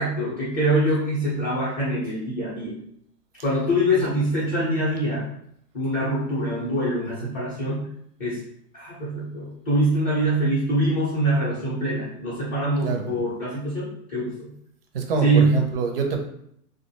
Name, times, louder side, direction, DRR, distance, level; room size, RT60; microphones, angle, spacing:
voice 1, 0.0-2.7 3.4-5.3 5.7-7.9 8.2-8.4 8.7-14.5 15.2-15.7, right 1 dB, 20° left, -10 dB, 0.6 m, -24 dB
voice 2, 12.8-13.1 14.9-16.2, right 5 dB, 45° right, 3 dB, 0.4 m, -26 dB
2.3 x 2.1 x 2.7 m, 0.70 s
hypercardioid pair, 155°, 45 cm